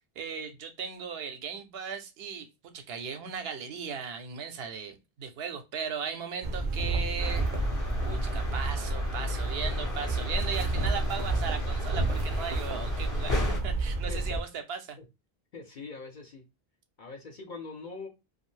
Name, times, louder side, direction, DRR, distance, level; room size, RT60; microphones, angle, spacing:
voice 1, 0.0-7.5 8.0-15.0, right 6 dB, 75° right, 0.9 m, -37 dB
sound 1, 6.4-14.4, right 2 dB, 55° right, 0.7 m, -30 dB
sound 2, 7.2-13.6, left 1 dB, 25° left, 0.5 m, -35 dB
voice 2, 14.1-14.4 15.0-15.1 15.5-16.5 17.0-18.1, left 4 dB, 55° left, 0.7 m, -42 dB
2.6 x 2.2 x 3.2 m
omnidirectional pair, 1.0 m